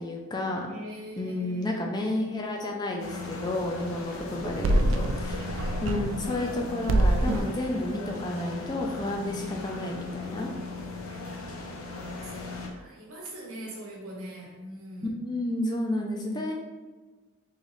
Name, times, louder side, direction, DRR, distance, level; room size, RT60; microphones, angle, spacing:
voice 1, 0.0-0.7 1.2-10.5 11.6-11.7 15.2-16.5, left 1 dB, 20° left, 1 dB, 0.4 m, -31 dB
voice 2, 0.7-2.2 4.6-5.8 10.9-15.1, right 1 dB, 85° right, -2 dB, 1.1 m, -44 dB
sound 1, 3.0-12.7, left 3 dB, 80° left, 0.7 m, -38 dB
sound 2, 4.4-6.6 6.9-7.6, right 1 dB, 65° right, 0.3 m, -26 dB
3.9 x 3.1 x 3.0 m, 1.3 s
head